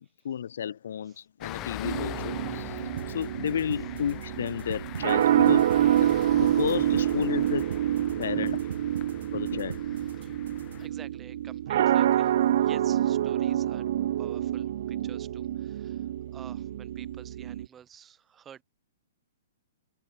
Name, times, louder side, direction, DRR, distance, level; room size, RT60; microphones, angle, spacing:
voice 1, 0.2-2.8 3.1-5.7 6.0-6.1 6.4-7.7 8.2-8.6 9.3-9.8, left 9 dB, 60° left, 0.5 m, -32 dB
sound 1, 1.4-10.9, left 17 dB, 20° left, 0.9 m, -42 dB
sound 2, 1.8-17.7, right 11 dB, 45° right, 0.6 m, -27 dB
sound 3, 3.0-10.9, right 8 dB, 75° right, 5.6 m, -44 dB
voice 2, 10.8-13.9 14.2-18.6, right 8 dB, 10° right, 1.8 m, -50 dB
hypercardioid pair, 180°, 0 cm